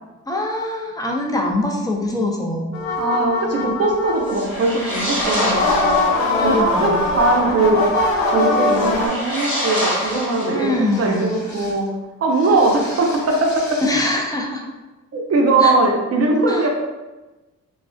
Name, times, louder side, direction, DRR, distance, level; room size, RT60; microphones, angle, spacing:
voice 1, 0.3-2.8 6.3-7.0 10.5-11.3 13.8-14.6 15.6-15.8 16.5-16.7, left 1 dB, 10° left, 0 dB, 0.5 m, -23 dB
sound 1, 2.7-4.5 5.2-9.1, left 2 dB, 85° left, 0.5 m, -21 dB
voice 2, 3.0-6.0 6.4-7.8 8.3-11.9 12.2-13.8 15.1-16.7, right 2 dB, 45° right, 0 dB, 0.7 m, -20 dB
sound 2, 4.2-6.3 8.7-11.0, equal, 5° right, 1.3 m, -26 dB
sound 3, 7.9-9.3 9.9-10.2 10.9-11.9 12.3-14.0, left 2 dB, 50° left, 0.9 m, -40 dB
2.4 x 2.3 x 2.2 m, 1.1 s
supercardioid pair, 45°, 36 cm